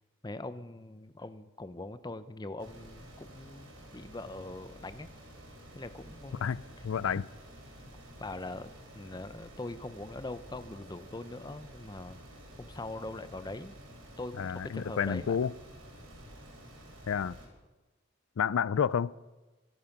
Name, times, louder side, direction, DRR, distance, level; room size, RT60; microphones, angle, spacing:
voice 1, 0.2-5.1 5.7-6.7 7.0-7.1 8.2-12.2 12.6-13.8 14.2-15.4, left 2 dB, 20° left, 0.7 m, -42 dB
fan helsinki socispihavalko, 2.6-17.5, equal, 85° right, 4.5 m, -51 dB
voice 2, 6.8-7.2 14.4-15.5 17.1-17.4 18.4-19.1, left 7 dB, 85° left, 0.4 m, -29 dB
25.0 x 8.9 x 5.9 m
head